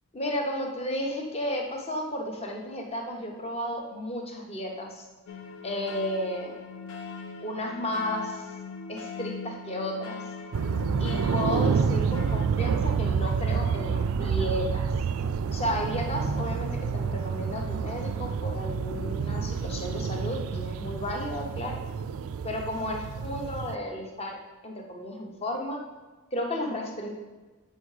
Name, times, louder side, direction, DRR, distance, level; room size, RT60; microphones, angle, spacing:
voice 1, 0.1-5.1 5.6-6.6 7.4-8.5 8.9-10.2 11.0-14.9 15.5-21.8 22.4-24.4 24.6-25.8 26.3-27.1, left 1 dB, 25° left, 1 dB, 0.9 m, -33 dB
sound 1, 5.3-12.5, left 5 dB, 70° left, 0.8 m, -41 dB
sound 2, 10.5-23.8, right 6 dB, 70° right, 0.3 m, -28 dB
7.7 x 4.6 x 4.9 m, 1.2 s
head